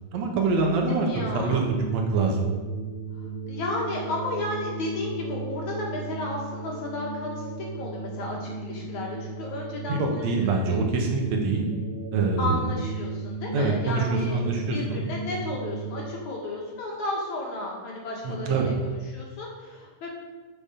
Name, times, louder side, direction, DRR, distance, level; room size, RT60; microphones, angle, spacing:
voice 1, 0.1-2.5 9.9-11.7 12.1-12.6 13.5-15.0 18.2-18.7, right 3 dB, 60° right, 1 dB, 2.3 m, -25 dB
voice 2, 0.9-1.6 3.1-10.0 10.4-10.5 12.4-20.1, left 2 dB, 60° left, -3 dB, 3.0 m, -33 dB
sound 1, 1.2-16.0, right 3 dB, 90° right, 3.3 m, -36 dB
7.2 x 7.0 x 6.8 m, 1.3 s
omnidirectional pair, 4.0 m